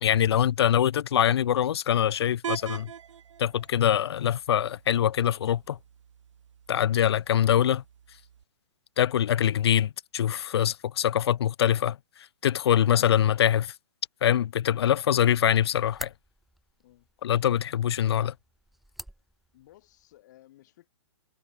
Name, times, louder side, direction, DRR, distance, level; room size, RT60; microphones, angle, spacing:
voice 1, 0.0-2.9 3.4-5.8 6.7-7.8 9.0-12.0 12.4-13.7 14.2-16.1 17.2-18.3, left 10 dB, 50° left, 0.5 m, -24 dB
sound 1, 2.4-8.4, right 8 dB, 65° right, 1.5 m, -43 dB
sound 2, 15.2-20.2, right 1 dB, ahead, 0.7 m, -49 dB
voice 2, 19.5-20.9, left 15 dB, 35° left, 7.4 m, -58 dB
hypercardioid pair, 175°, 17 cm